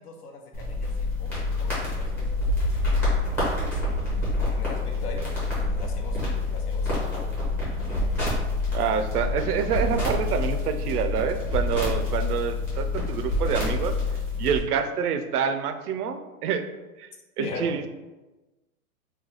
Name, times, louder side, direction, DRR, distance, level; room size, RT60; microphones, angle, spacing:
voice 1, 0.0-3.0 3.2-4.0 4.5-7.2 17.4-17.8, left 2 dB, 80° left, 3 dB, 0.9 m, -40 dB
sound 1, 0.5-14.6, left 2 dB, 5° left, 0.5 m, -27 dB
voice 2, 8.7-14.0 14.4-16.6 17.0-17.1 17.4-17.9, right 7 dB, 80° right, 9 dB, 0.6 m, -27 dB
3.3 x 2.2 x 3.7 m, 1.1 s
hypercardioid pair, 150°, 45 cm